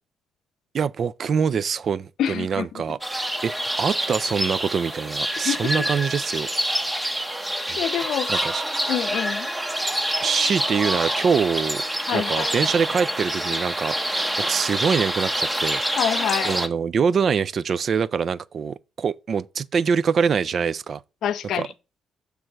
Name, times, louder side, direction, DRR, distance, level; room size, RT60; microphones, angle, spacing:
voice 1, 0.7-3.5 3.8-6.5 7.7-7.8 8.3-8.6 10.2-11.8 12.1-15.8 16.4-21.0 21.5-21.7, right 6 dB, 50° right, 0.3 m, -24 dB
voice 2, 2.2-2.8 5.4-5.7 7.8-8.5 8.9-9.5 12.1-12.5 16.0-16.5 21.2-21.7, left 9 dB, 75° left, 0.6 m, -26 dB
sound 1, 3.0-16.7, right 1 dB, 10° right, 0.6 m, -26 dB
6.3 x 3.3 x 6.0 m
cardioid pair, 90°, 0 cm